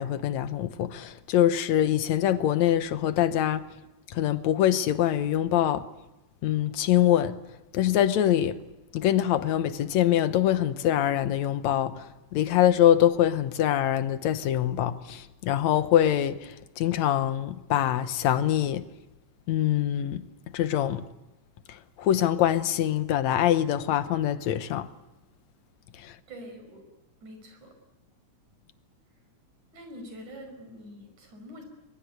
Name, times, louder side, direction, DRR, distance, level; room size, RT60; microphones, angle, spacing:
voice 1, 0.0-3.6 4.1-5.9 6.4-7.4 7.7-8.6 8.9-18.9 19.5-20.2 20.5-21.1 21.7-24.9 26.0-26.2, left 11 dB, 70° left, 2.2 m, -24 dB
voice 2, 26.3-26.8 27.2-27.7 29.7-31.6, equal, 75° right, 6.8 m, -45 dB
23.0 x 22.0 x 8.1 m
omnidirectional pair, 3.4 m